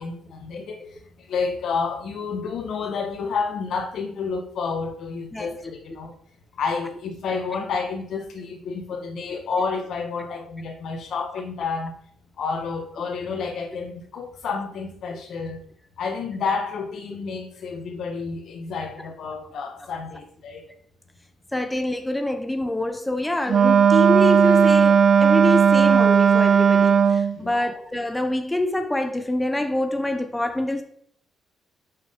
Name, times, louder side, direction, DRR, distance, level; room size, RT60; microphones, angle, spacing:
voice 1, 0.0-6.1 6.6-11.9 12.4-15.6 16.0-20.6 27.3-27.7, left 5 dB, 70° left, 1.3 m, -30 dB
voice 2, 21.5-30.8, left 1 dB, 10° left, 0.6 m, -26 dB
Wind instrument woodwind instrument, 23.5-27.4, right 7 dB, 55° right, 0.5 m, -16 dB
6.2 x 5.8 x 3.7 m
cardioid pair, 90°, 0 cm